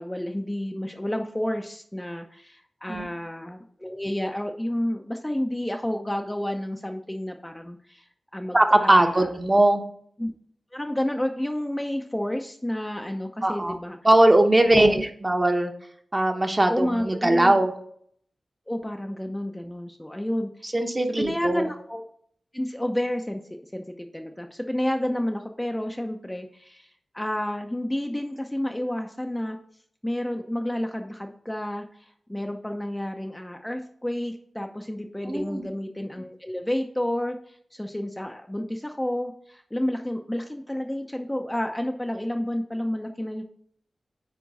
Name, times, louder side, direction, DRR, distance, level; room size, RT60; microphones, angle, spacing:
voice 1, 0.0-8.1 8.3-9.3 10.2-10.3 10.7-14.0 14.7-15.0 16.7-17.5 18.7-20.7 21.1-22.0 22.5-23.4 23.7-29.6 30.0-43.4, left 1 dB, 10° left, 4 dB, 0.7 m, -30 dB
voice 2, 8.5-9.8 13.4-13.8 14.0-15.7 16.1-17.7 20.6-21.7 35.2-35.6, right 1 dB, 25° right, 4 dB, 1.1 m, -20 dB
9.4 x 4.4 x 4.0 m, 0.64 s
cardioid pair, 70°, 0 cm